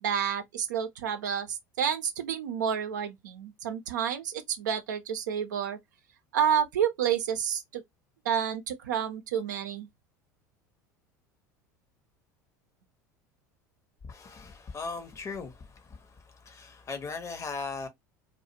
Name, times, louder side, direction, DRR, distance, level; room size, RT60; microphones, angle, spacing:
voice 1, 0.0-5.8 6.3-7.8 8.2-9.9, right 8 dB, 80° right, 0.5 m, -29 dB
voice 2, 14.1-15.5 16.5-17.9, left 4 dB, 30° left, 0.7 m, -37 dB
2.3 x 2.1 x 2.7 m
hypercardioid pair, 75°, 10 cm